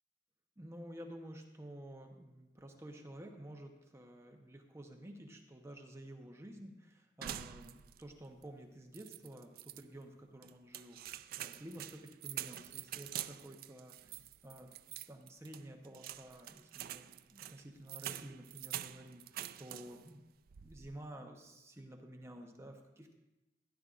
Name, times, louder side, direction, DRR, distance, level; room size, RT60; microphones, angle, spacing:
voice 1, 0.6-14.7 15.1-20.2 20.6-23.1, right 1 dB, 15° right, 2 dB, 0.8 m, -51 dB
sound 1, 7.2-8.1 8.4-8.5 8.9-9.8 10.4-20.1 20.5-21.0, right 12 dB, 55° right, 0.3 m, -46 dB
16.0 x 10.5 x 2.5 m, 0.97 s
head